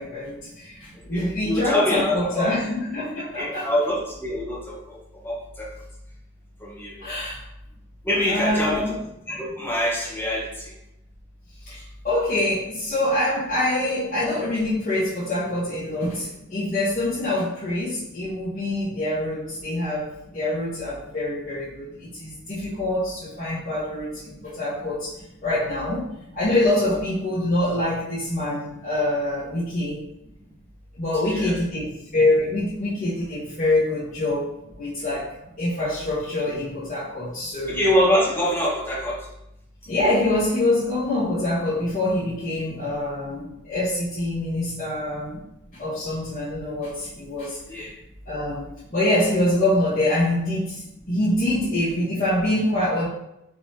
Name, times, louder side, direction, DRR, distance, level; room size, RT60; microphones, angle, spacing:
voice 1, 0.0-3.7 7.0-7.4 8.3-9.0 11.6-11.8 12.0-25.1 25.4-30.0 31.0-35.3 35.6-37.8 39.9-45.4 45.7-47.8 48.3-53.1, left 1 dB, 35° left, -14 dB, 1.3 m, -25 dB
voice 2, 1.1-2.5 3.4-5.0 5.2-5.7 6.6-7.0 7.2-7.3 8.0-8.8 9.3-10.7 11.7-11.8 26.9-27.0 31.3-31.5 37.7-39.2 47.7-47.9, left 1 dB, 10° left, -6 dB, 1.0 m, -24 dB
3.9 x 3.3 x 2.9 m, 0.85 s
head